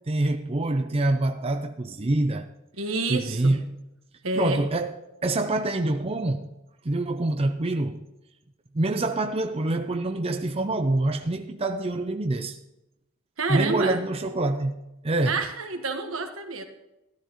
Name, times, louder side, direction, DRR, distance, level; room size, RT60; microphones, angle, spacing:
voice 1, 0.1-2.5 3.1-3.7 4.4-4.9 5.2-6.5 6.8-8.0 8.7-12.6 13.5-15.4, right 2 dB, 30° right, 0.6 m, -26 dB
voice 2, 2.8-3.6 4.2-4.6 13.4-14.0 15.2-16.6, right 3 dB, 75° right, 1.5 m, -28 dB
13.5 x 12.5 x 3.1 m
head